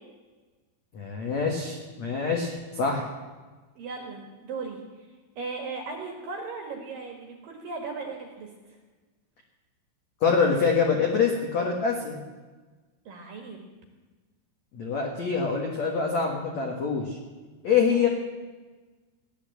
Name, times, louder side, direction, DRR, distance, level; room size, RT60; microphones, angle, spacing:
voice 1, 0.9-3.1 10.2-12.2 14.7-17.2 17.6-18.1, left 5 dB, 80° left, 1 dB, 1.6 m, -25 dB
voice 2, 3.8-5.1 5.4-8.5 13.1-13.6 17.8-18.0, right 4 dB, 60° right, 2 dB, 2.4 m, -37 dB
16.0 x 11.0 x 7.8 m, 1.3 s
omnidirectional pair, 5.8 m